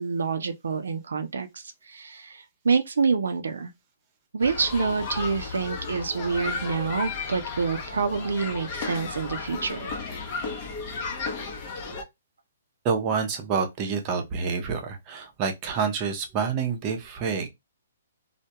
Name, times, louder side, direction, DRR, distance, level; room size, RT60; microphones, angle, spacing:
voice 1, 0.0-3.7 4.3-9.9, right 5 dB, 85° right, 0.4 m, -27 dB
sound 1, 4.4-12.0, left 4 dB, 30° left, 0.6 m, -34 dB
voice 2, 12.8-17.5, right 6 dB, 30° right, 0.6 m, -28 dB
2.2 x 2.1 x 2.7 m
hypercardioid pair, 150°, 0 cm